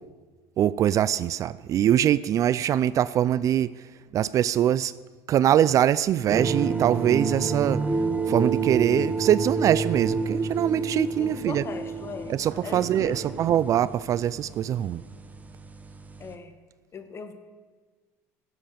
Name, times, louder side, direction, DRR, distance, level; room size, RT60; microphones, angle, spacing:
voice 1, 0.6-3.7 4.1-4.9 5.3-7.8 8.3-11.6 12.3-15.0, right 11 dB, 45° right, 18 dB, 0.4 m, -23 dB
sound 1, 6.3-16.3, right 4 dB, 20° right, 1.1 m, -29 dB
sound 2, 6.3-8.0 8.6-9.8 10.2-11.2 11.6-11.8 12.5-13.5, right 4 dB, 80° right, 3.2 m, -46 dB
voice 2, 11.2-12.3 12.6-13.2 16.2-16.5 16.9-17.3, left 5 dB, 35° left, 8 dB, 1.6 m, -38 dB
17.0 x 7.8 x 6.8 m, 1.4 s
supercardioid pair, 95°, 8 cm